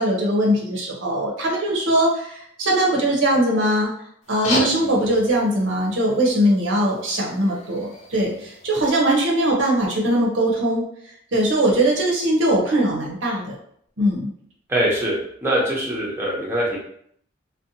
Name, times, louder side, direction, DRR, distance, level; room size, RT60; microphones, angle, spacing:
voice 1, 0.0-3.9 4.3-10.8 11.3-13.5 14.0-14.3, right 1 dB, 70° right, -1 dB, 0.7 m, -20 dB
sound 1, 4.2-9.2, left 2 dB, 35° left, 0.5 m, -33 dB
voice 2, 14.7-15.1 15.4-16.8, right 1 dB, 10° right, -5 dB, 0.6 m, -22 dB
2.6 x 2.2 x 2.6 m, 0.67 s
head